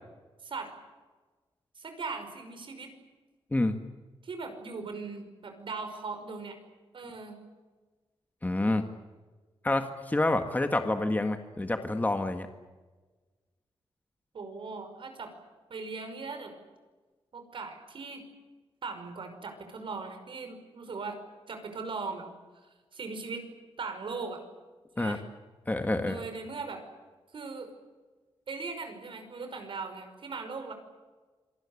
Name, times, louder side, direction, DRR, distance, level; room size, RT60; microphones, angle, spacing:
voice 1, 1.8-2.9 4.2-6.6 6.9-7.4 14.3-15.3 15.7-16.5 17.3-18.2 18.8-21.2 21.5-22.2 22.6-23.4 23.8-24.4 25.0-25.2 26.0-26.8 27.3-27.7 28.5-30.7, right 4 dB, 60° right, 7 dB, 5.5 m, -39 dB
voice 2, 8.4-8.8 9.6-12.5 25.0-25.2 25.7-26.2, left 2 dB, 15° left, 7 dB, 1.8 m, -28 dB
27.0 x 19.0 x 9.9 m, 1.3 s
cardioid pair, 90°, 10 cm